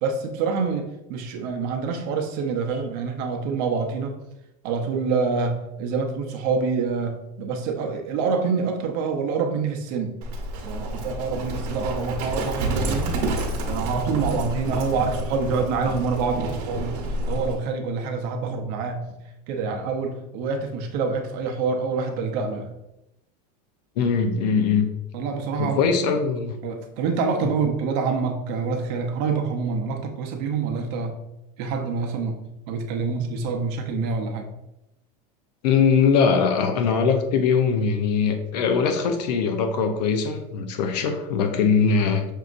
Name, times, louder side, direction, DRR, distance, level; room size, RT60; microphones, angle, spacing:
voice 1, 0.0-4.2 4.6-10.2 10.6-13.3 13.7-17.0 17.3-19.0 19.5-22.7 25.1-25.8 26.6-31.2 31.6-32.4 32.7-34.5, right 5 dB, 55° right, 3 dB, 0.7 m, -26 dB
Livestock farm animals working animals, 10.2-17.6, right 1 dB, 70° right, 1.0 m, -29 dB
voice 2, 24.0-24.9 25.6-26.5 27.4-27.5 35.6-42.2, left 5 dB, 80° left, 6 dB, 0.7 m, -21 dB
6.2 x 2.7 x 2.5 m, 0.89 s
supercardioid pair, 145°, 21 cm